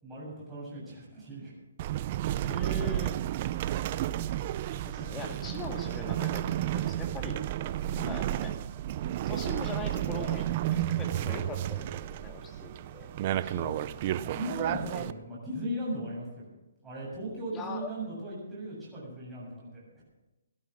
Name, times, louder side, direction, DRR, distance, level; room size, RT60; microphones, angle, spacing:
voice 1, 0.0-1.5 5.0-5.2 7.9-8.1 13.4-16.6 16.8-20.0, right 1 dB, 10° right, -8 dB, 7.5 m, -38 dB
sound 1, 1.8-15.1, right 12 dB, 35° right, 0.6 m, -32 dB
voice 2, 2.4-3.2 4.7-7.4 8.1-8.5 9.3-13.1 14.9-15.1 17.5-17.9, left 4 dB, 15° left, 3 dB, 2.1 m, -41 dB
17.0 x 11.5 x 6.3 m, 1.0 s
hypercardioid pair, 160°, 0 cm